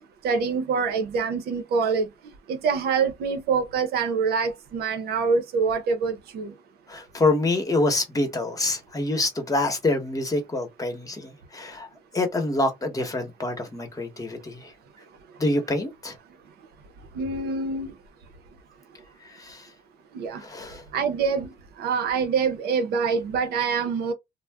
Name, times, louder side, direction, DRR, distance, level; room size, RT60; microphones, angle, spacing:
voice 1, 0.2-2.1 2.5-6.5 17.1-17.9 20.1-20.4 20.9-21.5 21.8-24.1, right 5 dB, 70° right, 0.7 m, -25 dB
voice 2, 6.9-11.9 12.1-14.7 15.4-16.1 19.2-19.7 20.4-20.8, left 2 dB, 20° left, 1.1 m, -26 dB
2.4 x 2.1 x 3.4 m
cardioid pair, 110°, 17 cm